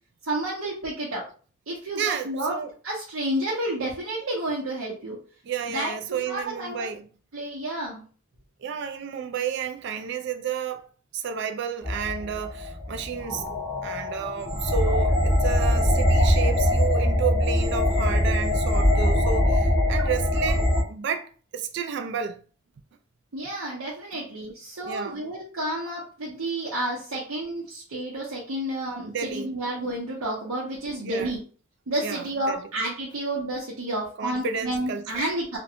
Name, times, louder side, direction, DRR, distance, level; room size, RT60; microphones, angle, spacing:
voice 1, 0.2-1.2 1.7-2.5 2.8-5.2 5.7-6.9 7.3-8.0 23.3-31.4 31.9-35.6, right 1 dB, 80° right, 0.7 m, -30 dB
voice 2, 1.9-2.7 5.5-7.1 8.6-10.9 11.1-13.5 13.8-22.4 24.1-24.2 24.8-25.2 29.0-29.5 31.0-31.3 32.0-32.6 34.2-35.1, right 7 dB, 55° right, 0.3 m, -31 dB
sound 1, 11.8-20.8, left 1 dB, ahead, 0.7 m, -22 dB
2.4 x 2.2 x 2.7 m
head